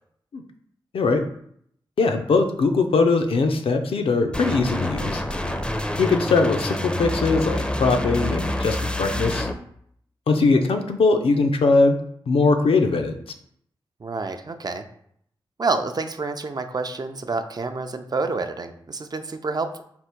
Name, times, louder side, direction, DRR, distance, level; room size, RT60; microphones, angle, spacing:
voice 1, 0.9-1.2 2.0-5.2 6.0-9.5 10.3-12.0 12.3-13.1, left 3 dB, 80° left, 6 dB, 0.5 m, -20 dB
sound 1, 4.3-9.5, left 1 dB, 10° left, 0.5 m, -27 dB
voice 2, 14.0-14.8 15.6-19.8, right 3 dB, 45° right, 7 dB, 0.5 m, -28 dB
3.5 x 2.5 x 4.4 m, 0.67 s
cardioid pair, 45°, 9 cm